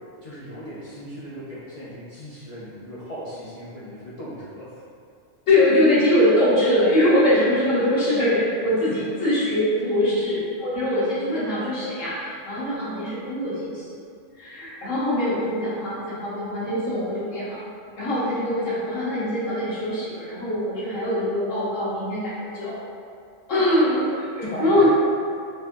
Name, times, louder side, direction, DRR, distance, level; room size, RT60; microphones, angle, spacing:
voice 1, 0.2-4.8 8.9-9.0 9.8-10.0 24.4-24.9, equal, 45° left, -10 dB, 0.5 m, -37 dB
voice 2, 5.5-8.9 9.2-13.8 14.4-17.6 18.0-22.9 23.5-24.3 24.6-24.9, left 1 dB, 75° left, -10 dB, 1.5 m, -22 dB
4.1 x 2.7 x 2.5 m, 2.4 s
omnidirectional pair, 1.3 m